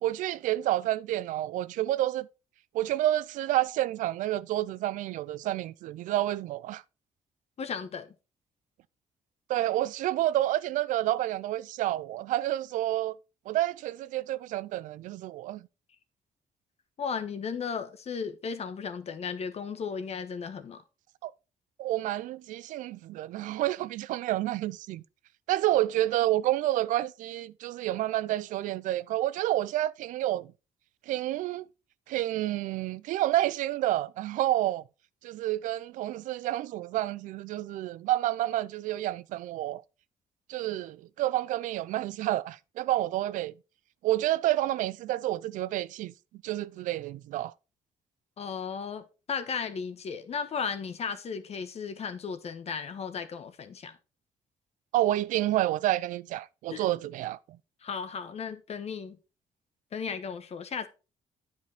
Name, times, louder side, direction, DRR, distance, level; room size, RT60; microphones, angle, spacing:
voice 1, 0.0-2.3 2.7-6.8 9.5-13.2 13.5-15.6 21.2-21.3 21.8-25.0 25.5-30.5 31.1-31.7 32.1-34.8 35.2-39.8 40.5-43.5 44.0-46.1 46.4-47.5 54.9-57.4, right 14 dB, 85° right, 0.4 m, -29 dB
voice 2, 7.6-8.1 17.0-20.8 48.4-53.9 56.7-56.8 57.8-59.2 59.9-60.9, left 6 dB, 55° left, 1.2 m, -35 dB
9.2 x 5.3 x 4.3 m
cardioid pair, 80°, 13 cm